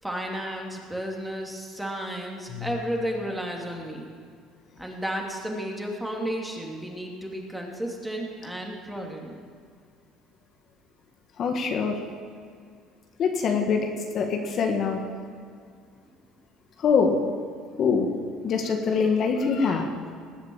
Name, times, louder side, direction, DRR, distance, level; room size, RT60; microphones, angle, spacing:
voice 1, 0.0-4.1 4.8-9.4, equal, 5° right, 0 dB, 2.8 m, -33 dB
voice 2, 11.4-12.0 13.2-15.0 16.8-17.2 17.8-18.1 18.4-19.9, left 5 dB, 50° left, 3 dB, 1.8 m, -24 dB
20.0 x 8.1 x 7.2 m, 2.1 s
supercardioid pair, 90°, 0 cm